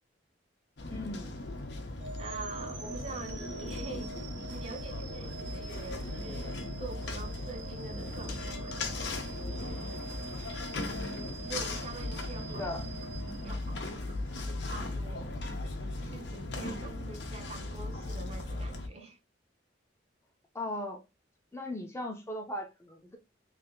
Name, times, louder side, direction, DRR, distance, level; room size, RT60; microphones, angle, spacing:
sound 1, 0.8-18.9, left 2 dB, 65° left, 0.8 m, -38 dB
voice 1, 0.9-1.3 12.5-12.9 20.5-21.0 21.5-23.2, left 1 dB, 15° left, 0.7 m, -37 dB
sound 2, 2.0-14.1, right 4 dB, 75° right, 0.7 m, -46 dB
voice 2, 2.2-4.1 4.5-9.2 9.4-10.0 11.4-12.7 13.4-15.4 16.0-19.2, right 3 dB, 35° right, 0.6 m, -45 dB
3.3 x 2.7 x 3.7 m
head